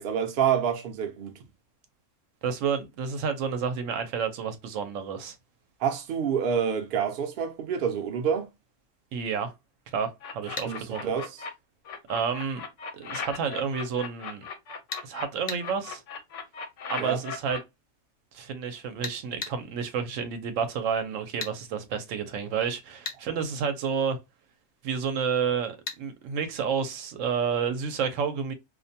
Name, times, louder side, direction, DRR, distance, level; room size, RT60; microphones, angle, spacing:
voice 1, 0.0-1.3 5.8-8.5 10.6-11.3 17.0-17.2, right 8 dB, 55° right, 0.7 m, -27 dB
voice 2, 2.4-5.4 9.1-9.5 9.9-11.1 12.1-12.6 12.9-14.4 15.0-16.0 16.9-17.6 18.3-24.2 24.8-28.5, right 6 dB, 85° right, 1.0 m, -30 dB
sound 1, 10.2-11.5 11.8-15.2 15.6-17.6, left 5 dB, 75° left, 1.0 m, -37 dB
sound 2, 10.6-10.7 14.9-15.1 15.5-15.6 19.0-19.6 21.4-21.6 23.0-23.2 25.9-26.0, left 4 dB, 55° left, 0.5 m, -35 dB
2.5 x 2.1 x 2.6 m
omnidirectional pair, 1.3 m